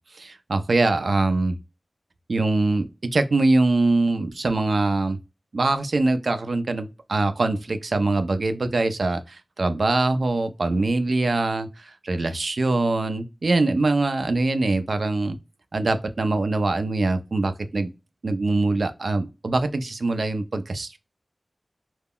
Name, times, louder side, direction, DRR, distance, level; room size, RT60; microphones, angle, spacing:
voice 1, 0.1-1.6 2.3-2.8 3.1-5.2 5.5-15.4 15.7-17.9 18.2-21.0, right 2 dB, 75° right, 0.4 m, -23 dB
2.2 x 2.0 x 3.5 m
wide cardioid pair, 45°, 0 cm